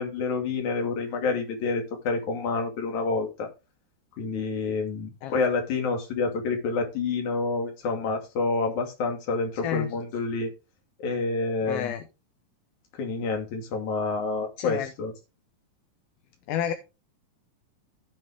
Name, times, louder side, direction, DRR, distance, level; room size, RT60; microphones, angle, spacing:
voice 1, 0.0-3.5 4.2-10.5 11.0-11.9 13.0-15.1, left 4 dB, 50° left, 3.4 m, -28 dB
voice 2, 11.6-12.0 14.6-14.9 16.5-16.7, left 10 dB, 75° left, 2.6 m, -29 dB
16.0 x 5.6 x 3.6 m
omnidirectional pair, 4.8 m